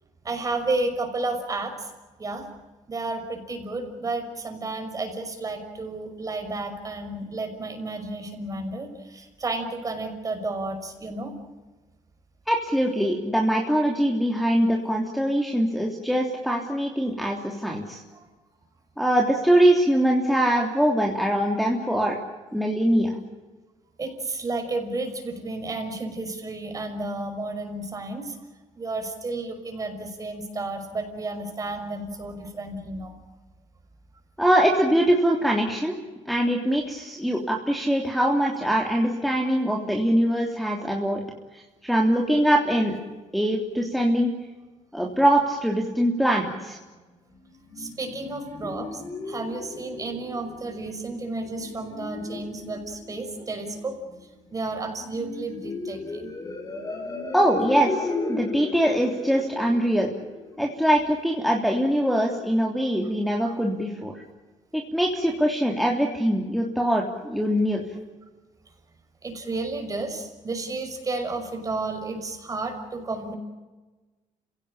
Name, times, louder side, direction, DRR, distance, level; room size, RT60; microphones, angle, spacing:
voice 1, 0.2-1.7 2.2-2.5 2.9-11.3 18.1-18.2 24.0-28.4 28.8-33.1 47.8-54.0 54.5-56.3 69.2-73.3, right 2 dB, 30° right, 6 dB, 5.9 m, -32 dB
voice 2, 12.5-18.0 19.0-22.2 22.5-23.1 34.4-36.0 36.2-41.2 41.5-43.0 43.3-44.3 44.9-46.8 57.3-60.1 60.6-64.2 64.9-67.8, equal, ahead, -1 dB, 3.2 m, -23 dB
sound 1, 47.3-61.3, left 3 dB, 30° left, 4.2 m, -36 dB
30.0 x 17.0 x 8.7 m, 1.2 s
cardioid pair, 110°, 12 cm